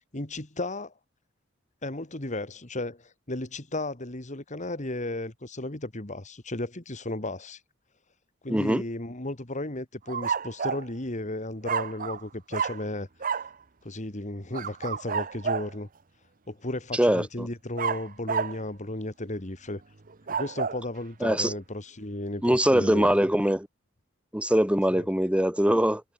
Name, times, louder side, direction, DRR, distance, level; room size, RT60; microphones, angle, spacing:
voice 1, 0.1-0.9 1.8-7.6 8.4-13.1 13.8-15.9 16.5-19.8 20.3-23.1 24.9-25.1, left 2 dB, 35° left, 2.3 m, -34 dB
voice 2, 8.5-8.8 16.9-17.5 21.2-21.5 22.4-23.7 24.3-26.0, equal, 5° right, 1.7 m, -23 dB
sound 1, 10.1-10.9 11.6-12.2 12.5-12.9 13.2-13.5 14.5-15.7 17.8-18.6 20.1-20.8, right 6 dB, 40° right, 0.9 m, -30 dB
head